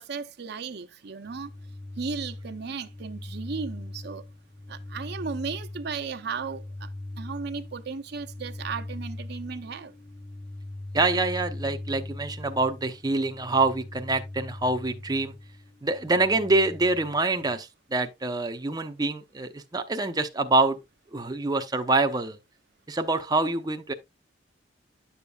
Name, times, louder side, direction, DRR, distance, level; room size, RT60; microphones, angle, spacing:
voice 1, 0.0-1.5 2.0-4.2 4.7-6.9 7.2-9.9, right 5 dB, 60° right, 0.7 m, -35 dB
sound 1, 1.3-17.5, left 1 dB, 10° left, 0.4 m, -40 dB
voice 2, 10.9-15.3 15.8-20.8 21.1-22.4 22.9-23.9, right 3 dB, 20° right, 0.7 m, -26 dB
10.0 x 7.0 x 2.3 m
head